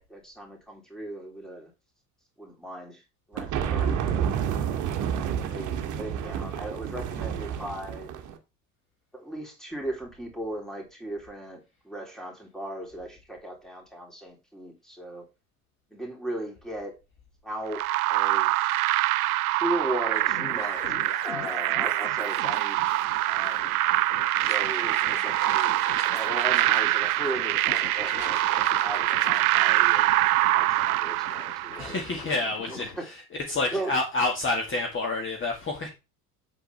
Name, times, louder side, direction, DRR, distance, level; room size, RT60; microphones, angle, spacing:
voice 1, 0.0-1.7 2.4-3.0 3.3-4.3 4.9-8.1 9.1-15.2 15.9-16.9 17.4-18.5 19.6-21.0 21.2-23.8 24.4-25.8 26.1-30.1 30.5-31.9 32.6-33.1 33.7-33.9, right 1 dB, ahead, 0 dB, 3.4 m, -37 dB
sound 1, 3.4-8.4, right 8 dB, 35° right, 1.5 m, -29 dB
sound 2, 17.7-32.1, right 16 dB, 60° right, 0.5 m, -25 dB
sound 3, 20.1-33.0, left 6 dB, 85° left, 0.9 m, -42 dB
voice 2, 31.8-35.9, left 2 dB, 25° left, 2 dB, 2.0 m, -29 dB
8.2 x 7.8 x 3.4 m, 0.28 s
figure-of-eight pair, 70°, 49 cm